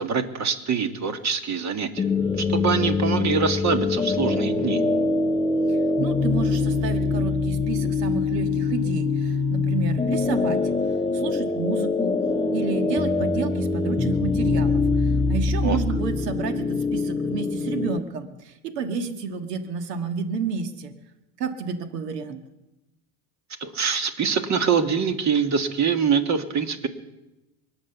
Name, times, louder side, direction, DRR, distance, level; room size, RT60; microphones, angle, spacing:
voice 1, 0.0-2.1 2.4-4.8 15.6-15.8 23.6-26.9, right 6 dB, 35° right, 8 dB, 1.8 m, -24 dB
sound 1, 2.0-18.0, left 3 dB, 10° left, 0.6 m, -24 dB
voice 2, 5.7-10.6 11.1-12.2 12.5-20.9 21.4-22.4, right 5 dB, 90° right, 7 dB, 1.7 m, -30 dB
23.5 x 8.0 x 6.9 m, 0.96 s
supercardioid pair, 100°, 47 cm